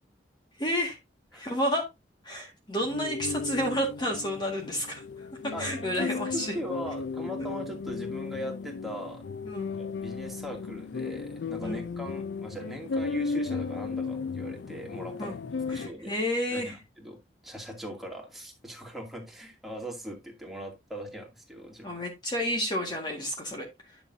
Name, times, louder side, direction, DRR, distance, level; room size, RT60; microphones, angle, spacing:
voice 1, 0.6-1.0 1.3-1.9 2.2-6.5 9.5-9.7 11.6-11.9 15.2-15.3 15.7-16.8 21.8-24.0, equal, 25° left, 1.8 m, -31 dB
sound 1, 2.8-15.9, left 4 dB, 85° left, 0.4 m, -35 dB
voice 2, 5.5-9.2 9.8-15.4 15.7-16.1 16.5-17.2 17.4-22.0, equal, ahead, 2.4 m, -40 dB
9.8 x 6.9 x 2.6 m
head